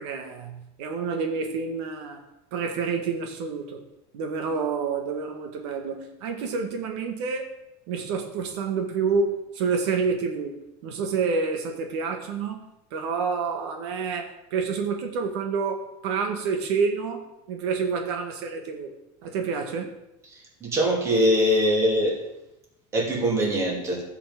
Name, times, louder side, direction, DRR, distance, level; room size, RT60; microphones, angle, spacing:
voice 1, 0.0-2.2 2.5-3.8 4.1-7.5 7.9-10.6 10.8-18.9 19.2-20.0, right 5 dB, 80° right, 4 dB, 1.8 m, -28 dB
voice 2, 20.3-22.2 22.9-24.0, equal, 20° right, -1 dB, 2.8 m, -22 dB
15.0 x 6.0 x 7.3 m, 0.89 s
cardioid pair, 180°, 14 cm